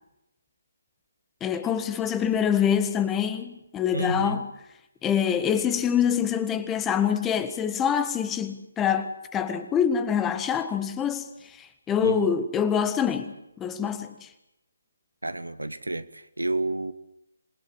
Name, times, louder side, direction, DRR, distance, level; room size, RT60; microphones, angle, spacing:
voice 1, 1.4-4.5 5.0-11.3 11.6-14.3, left 8 dB, 10° left, 1.5 m, -25 dB
voice 2, 3.9-4.4 12.0-12.3 15.2-16.9, right 2 dB, 85° right, 1.5 m, -30 dB
27.0 x 21.0 x 7.7 m
figure-of-eight pair, 145°, 0 cm